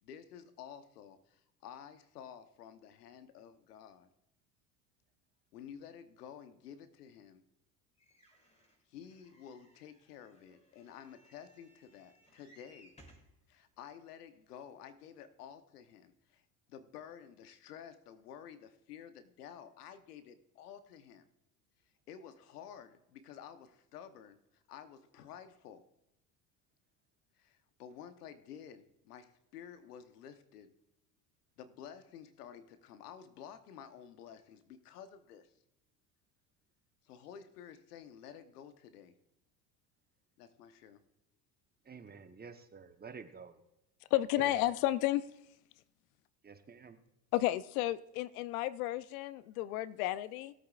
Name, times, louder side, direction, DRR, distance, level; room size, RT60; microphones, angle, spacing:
voice 1, 0.0-4.1 5.5-7.4 8.9-12.9 13.5-21.2 22.1-25.8 27.4-30.7 31.6-35.5 37.0-39.1 40.4-41.0, left 8 dB, 90° left, 10 dB, 1.0 m, -52 dB
sound 1, 8.0-13.4 14.1-14.2 14.4-14.5, right 1 dB, 15° left, 3.0 m, -64 dB
voice 2, 41.9-43.6 44.3-44.7 46.4-47.0, right 5 dB, 20° right, 8 dB, 1.0 m, -49 dB
voice 3, 44.1-45.2 47.3-50.5, left 15 dB, 75° left, 16 dB, 0.6 m, -32 dB
18.5 x 8.4 x 2.4 m, 0.87 s
hypercardioid pair, 80°, 45 cm